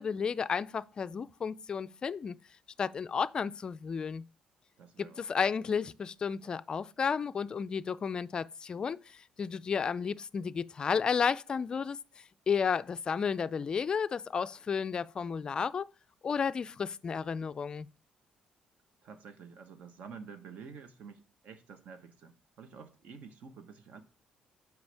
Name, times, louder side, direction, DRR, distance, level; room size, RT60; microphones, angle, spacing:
voice 1, 0.0-2.4 2.8-4.2 5.0-12.0 12.5-15.9 16.2-17.9, left 6 dB, 35° left, 0.3 m, -32 dB
voice 2, 4.8-5.3 19.0-24.0, right 5 dB, 60° right, 1.1 m, -49 dB
8.0 x 5.0 x 3.4 m
cardioid pair, 135°, 3 cm